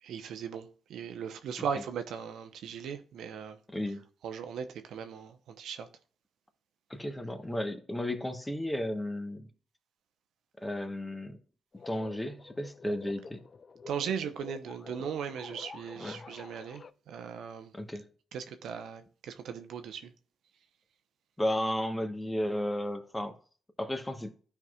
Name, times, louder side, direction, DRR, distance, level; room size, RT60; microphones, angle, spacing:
voice 1, 0.0-3.6 4.2-5.9 13.9-17.7 18.3-20.1, right 7 dB, 80° right, 0.7 m, -38 dB
voice 2, 3.7-4.0 6.9-9.5 10.6-11.4 11.9-13.4 16.0-16.2 17.7-18.1 21.4-23.4 23.8-24.3, left 1 dB, 15° left, 1.1 m, -33 dB
sound 1, 11.7-16.9, left 5 dB, 45° left, 0.4 m, -48 dB
12.0 x 4.7 x 2.4 m
supercardioid pair, 60°, 0 cm